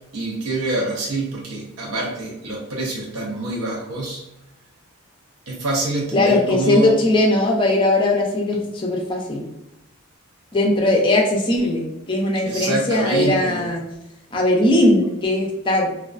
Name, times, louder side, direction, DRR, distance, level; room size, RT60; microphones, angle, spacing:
voice 1, 0.1-4.2 5.5-7.0 12.5-13.6, right 2 dB, 85° right, -2 dB, 0.6 m, -25 dB
voice 2, 6.1-9.5 10.5-13.9 14.3-15.9, left 1 dB, 25° left, 0 dB, 0.4 m, -19 dB
2.3 x 2.3 x 2.4 m, 0.87 s
head